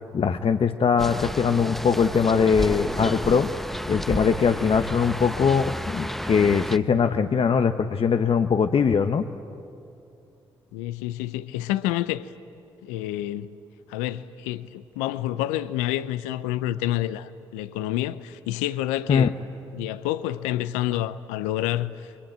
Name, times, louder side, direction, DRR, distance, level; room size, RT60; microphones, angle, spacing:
voice 1, 0.1-3.5 3.8-9.3 19.1-19.3, left 6 dB, 50° left, 1.0 m, -21 dB
sound 1, 1.0-6.8, equal, ahead, 1.1 m, -31 dB
voice 2, 10.7-12.3 12.8-13.6 13.9-19.3 19.7-22.1, left 14 dB, 85° left, 0.6 m, -28 dB
29.0 x 23.0 x 8.9 m
hypercardioid pair, 40°, 12 cm